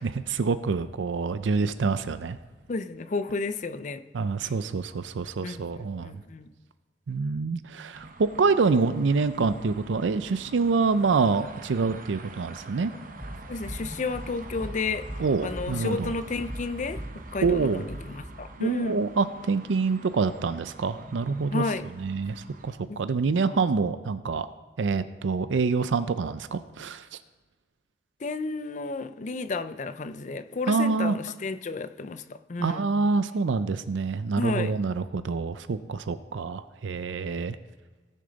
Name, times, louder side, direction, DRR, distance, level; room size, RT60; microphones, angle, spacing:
voice 1, 0.0-2.4 4.1-6.2 7.1-12.9 15.2-16.1 17.4-17.8 18.6-21.6 22.0-24.5 24.8-27.2 30.7-31.2 32.6-37.6, right 4 dB, 80° right, 0.5 m, -26 dB
voice 2, 2.7-4.0 4.4-4.5 5.4-6.5 13.5-19.0 21.5-21.8 22.9-23.0 28.2-32.9 34.4-34.7, left 3 dB, 40° left, 0.5 m, -32 dB
sound 1, 7.9-22.7, right 3 dB, 45° right, 0.8 m, -46 dB
sound 2, 13.2-18.2, equal, ahead, 3.3 m, -39 dB
18.0 x 6.5 x 4.0 m
head